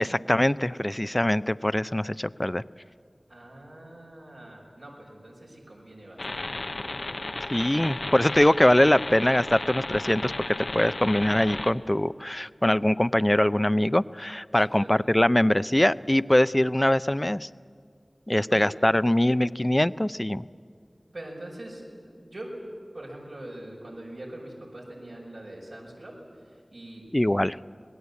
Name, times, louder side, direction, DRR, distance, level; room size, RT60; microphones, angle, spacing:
voice 1, 0.0-2.6 7.5-10.3 10.7-17.5 18.3-20.5 27.1-27.6, left 1 dB, 25° left, 15 dB, 0.5 m, -23 dB
voice 2, 3.3-7.2 14.7-15.0 18.3-18.7 21.1-22.6 22.9-26.2 26.5-27.1, right 1 dB, 90° right, -4 dB, 5.9 m, -43 dB
sound 1, 6.2-11.7, left 2 dB, 75° left, 0.9 m, -34 dB
26.5 x 19.0 x 8.4 m, 2.2 s
wide cardioid pair, 40°, 0 cm